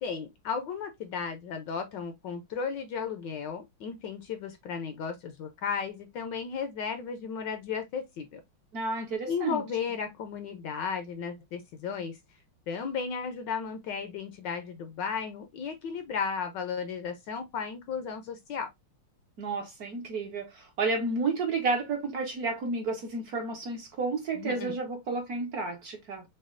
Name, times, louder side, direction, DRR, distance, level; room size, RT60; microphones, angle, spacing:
voice 1, 0.0-8.4 9.3-12.2 12.7-18.7 24.3-24.7, left 6 dB, 70° left, 1.2 m, -34 dB
voice 2, 8.7-9.6 19.4-26.2, right 3 dB, 55° right, 1.1 m, -31 dB
6.2 x 2.3 x 2.4 m
omnidirectional pair, 2.3 m